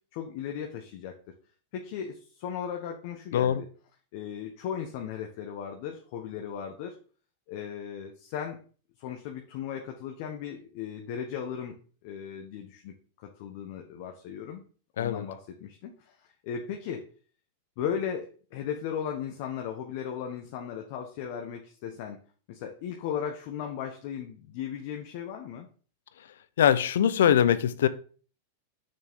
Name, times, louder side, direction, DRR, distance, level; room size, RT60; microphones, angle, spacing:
voice 1, 0.1-1.2 1.7-3.7 4.1-7.0 7.5-8.6 9.0-11.7 12.0-14.6 15.0-16.1 16.4-17.1 17.8-22.2 22.5-25.7, left 8 dB, 55° left, 1.2 m, -36 dB
voice 2, 26.6-27.9, left 9 dB, 85° left, 0.7 m, -22 dB
6.6 x 6.2 x 3.7 m
supercardioid pair, 140°, 0 cm